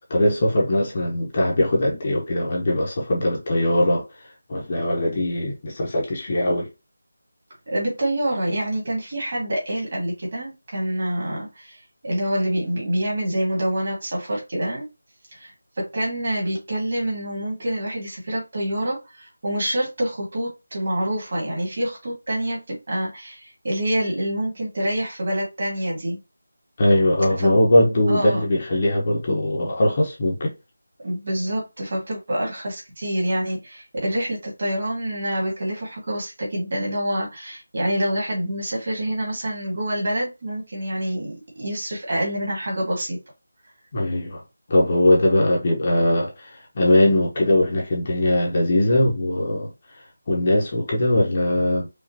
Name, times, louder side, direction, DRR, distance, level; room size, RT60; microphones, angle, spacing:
voice 1, 0.1-4.1 4.5-6.7 26.8-30.5 43.9-44.4 44.7-49.7 50.3-51.9, left 1 dB, 25° left, 0.9 m, -20 dB
voice 2, 7.7-14.9 15.3-26.2 27.4-27.5 28.1-28.4 31.0-43.2, right 1 dB, 35° right, 1.9 m, -26 dB
5.0 x 2.5 x 2.8 m
figure-of-eight pair, 175°, 0 cm